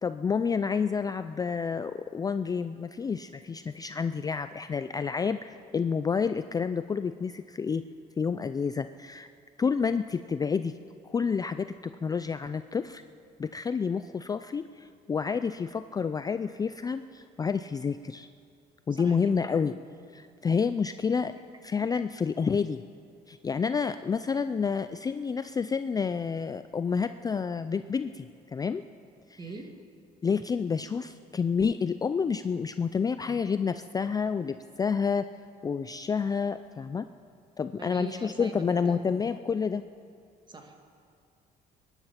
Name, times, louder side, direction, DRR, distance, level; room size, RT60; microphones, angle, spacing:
voice 1, 0.0-7.8 8.2-9.3 9.6-10.8 11.0-13.0 13.4-18.3 18.9-19.7 20.1-21.3 21.6-22.8 23.3-28.3 28.5-28.8 29.3-29.4 30.2-35.3 35.6-37.1 37.6-39.8, left 6 dB, 20° left, 11 dB, 0.4 m, -29 dB
voice 2, 18.9-19.4 21.9-22.0 29.4-29.7 37.8-39.0 40.5-40.8, right 3 dB, 25° right, 4 dB, 1.9 m, -42 dB
22.5 x 10.5 x 5.9 m, 2.3 s
cardioid pair, 110°, 17 cm